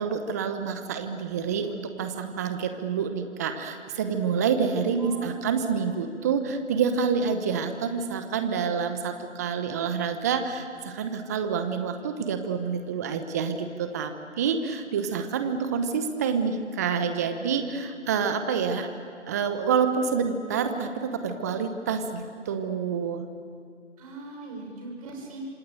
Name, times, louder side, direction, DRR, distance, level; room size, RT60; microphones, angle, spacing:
voice 1, 0.0-18.9 19.3-23.2, right 6 dB, 15° right, 8 dB, 0.9 m, -28 dB
voice 2, 5.0-5.8 24.0-25.4, right 3 dB, 30° right, 1 dB, 6.3 m, -40 dB
26.5 x 24.5 x 9.1 m, 2.4 s
figure-of-eight pair, 150°, 36 cm